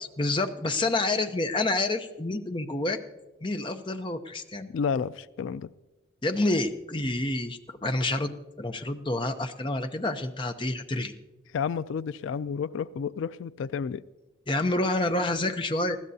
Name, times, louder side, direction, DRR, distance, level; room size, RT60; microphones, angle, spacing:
voice 1, 0.2-3.0 3.4-4.7 6.2-11.1 14.5-16.0, left 2 dB, 25° left, 0.7 m, -28 dB
voice 2, 4.7-5.7 11.5-14.0, left 6 dB, 75° left, 0.3 m, -31 dB
20.5 x 15.0 x 2.8 m
head